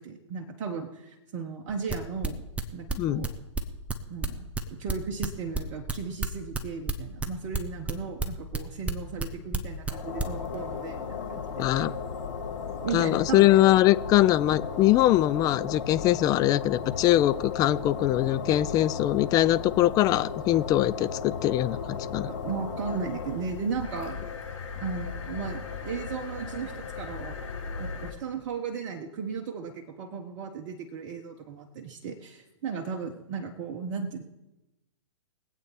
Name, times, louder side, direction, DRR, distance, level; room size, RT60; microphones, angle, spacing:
voice 1, 0.0-2.4 2.7-3.3 4.1-11.9 12.8-13.5 22.2-24.2 24.8-27.3 27.8-34.2, right 5 dB, 45° right, 3 dB, 1.4 m, -36 dB
sound 1, 1.7-5.3 5.5-9.2 9.5-9.9 10.2-10.5, right 3 dB, 10° right, 1.1 m, -29 dB
sound 2, 9.7-28.1, left 6 dB, 85° left, 4.0 m, -36 dB
voice 2, 11.6-11.9 12.9-21.8 22.1-22.3, left 14 dB, 25° left, 15 dB, 0.4 m, -22 dB
22.5 x 8.5 x 4.2 m, 0.97 s
hypercardioid pair, 120°, 16 cm